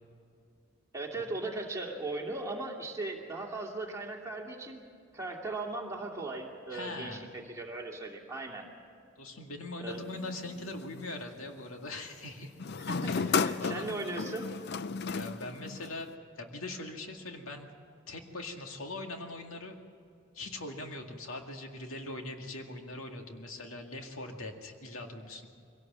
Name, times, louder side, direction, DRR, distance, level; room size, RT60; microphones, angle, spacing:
voice 1, 0.9-4.8 5.1-8.7 9.8-10.0 12.8-14.5, right 2 dB, 15° right, -1 dB, 2.4 m, -38 dB
voice 2, 6.7-7.4 9.2-12.5 13.0-13.9 15.1-16.1 16.4-17.7 18.1-19.8 20.3-25.5, left 2 dB, 90° left, 3 dB, 2.1 m, -41 dB
sound 1, 9.9-11.2 12.6-16.1, left 5 dB, 50° left, 0.5 m, -34 dB
23.0 x 17.5 x 7.5 m, 2.4 s
head